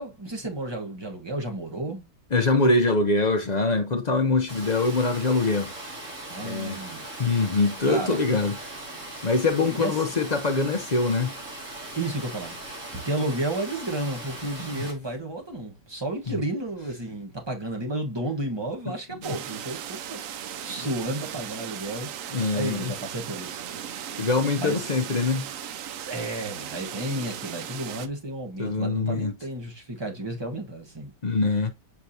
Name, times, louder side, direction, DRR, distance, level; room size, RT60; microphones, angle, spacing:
voice 1, 0.0-2.0 6.3-7.0 7.9-8.2 9.8-9.9 11.9-22.1 22.5-23.7 24.6-25.0 26.0-31.1, right 1 dB, 15° right, 1.2 m, -32 dB
voice 2, 2.3-5.7 6.4-6.8 7.2-8.7 9.2-11.3 14.7-14.9 16.3-16.4 19.3-19.4 22.3-22.9 24.2-25.5 28.6-29.3 31.2-31.7, left 3 dB, 45° left, 0.5 m, -24 dB
Water, 4.5-14.9, right 1 dB, 45° right, 2.8 m, -39 dB
sound 1, 19.2-28.1, right 9 dB, 65° right, 0.8 m, -37 dB
7.3 x 4.7 x 2.8 m
omnidirectional pair, 1.8 m